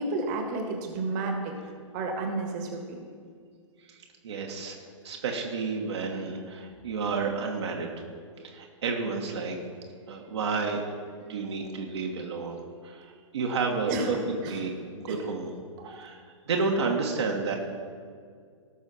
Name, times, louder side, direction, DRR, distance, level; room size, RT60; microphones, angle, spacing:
voice 1, 0.0-1.5 1.9-3.0 13.9-14.6 15.1-15.2 15.8-15.9, right 3 dB, 35° right, 3 dB, 1.6 m, -31 dB
voice 2, 3.9-4.8 5.0-7.9 8.4-9.6 10.1-10.8 11.2-14.2 14.5-15.5 15.8-17.6, right 4 dB, 55° right, 0 dB, 1.5 m, -31 dB
18.0 x 6.3 x 4.2 m, 2.1 s
figure-of-eight pair, 115°, 17 cm